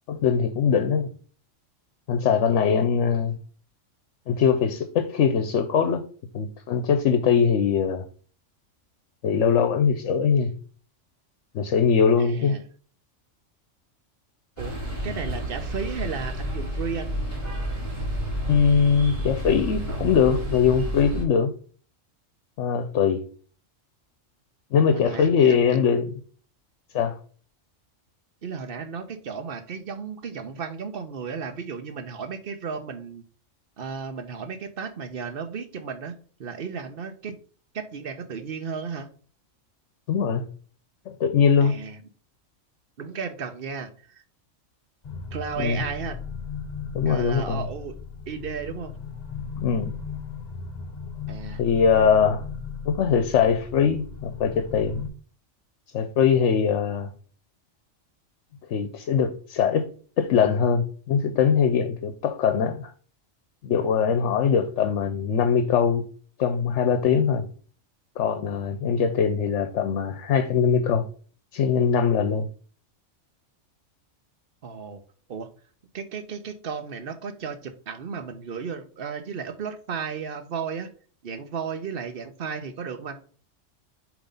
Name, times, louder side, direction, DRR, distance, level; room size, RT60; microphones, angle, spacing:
voice 1, 0.1-1.1 2.1-3.4 4.3-6.0 6.3-8.0 9.2-10.5 11.5-12.6 18.5-21.5 22.6-23.2 24.7-26.1 26.9-27.2 40.1-40.5 41.1-41.7 45.6-45.8 46.9-47.6 49.6-49.9 51.6-52.4 52.8-55.0 55.9-57.1 58.7-59.9 60.2-62.9 63.6-66.1 66.4-67.5 68.2-71.1 71.5-72.5, left 6 dB, 75° left, 1.0 m, -22 dB
voice 2, 12.2-12.6 14.6-17.1 24.9-25.6 28.4-33.2 33.8-36.1 36.4-37.4 37.7-39.1 41.6-42.0 43.0-44.2 45.3-46.2 47.1-48.0 48.3-48.9 51.3-51.6 74.6-75.0 75.3-75.5 75.9-80.9 81.2-83.2, right 6 dB, 50° right, 0.9 m, -34 dB
sound 1, 14.6-21.2, equal, 25° left, 3.5 m, -30 dB
sound 2, 45.0-55.1, left 6 dB, 40° left, 0.7 m, -36 dB
7.2 x 3.0 x 5.4 m
omnidirectional pair, 1.3 m